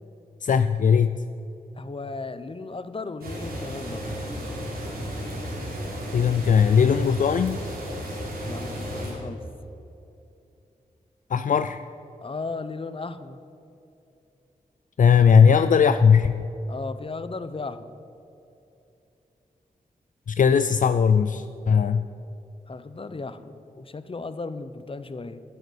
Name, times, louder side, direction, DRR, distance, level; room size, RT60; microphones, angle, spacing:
voice 1, 0.4-1.2 6.1-7.6 11.3-11.8 15.0-16.4 20.3-22.1, left 6 dB, 60° left, 11 dB, 0.4 m, -19 dB
voice 2, 1.8-4.1 8.4-9.4 12.2-13.4 16.7-18.0 22.7-25.4, left 3 dB, 35° left, 12 dB, 0.8 m, -35 dB
sound 1, 3.2-9.1, equal, 90° right, 3.6 m, -33 dB
10.0 x 9.2 x 8.3 m, 2.8 s
cardioid pair, 55°, 15 cm